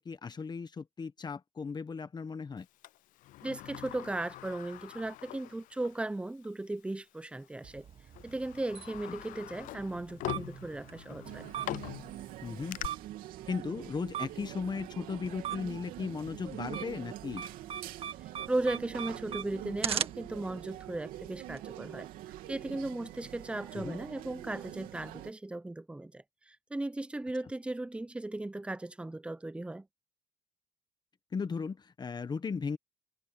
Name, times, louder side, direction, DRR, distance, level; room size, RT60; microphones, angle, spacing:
voice 1, 0.0-2.7 9.1-9.2 12.4-12.8 13.5-17.4 23.7-24.0 31.3-32.8, left 5 dB, 30° left, 1.2 m, -36 dB
Sliding door, 2.8-6.1 6.4-6.5 7.5-7.7 8.1-12.9, left 16 dB, 70° left, 0.4 m, -43 dB
voice 2, 3.4-7.9 8.2-11.5 18.5-22.1 22.5-29.9, right 2 dB, 10° right, 0.8 m, -36 dB
sound 1, 7.6-21.6, right 8 dB, 45° right, 1.9 m, -42 dB
sound 2, 11.2-25.3, right 14 dB, 85° right, 3.1 m, -45 dB
cardioid pair, 105°, 14 cm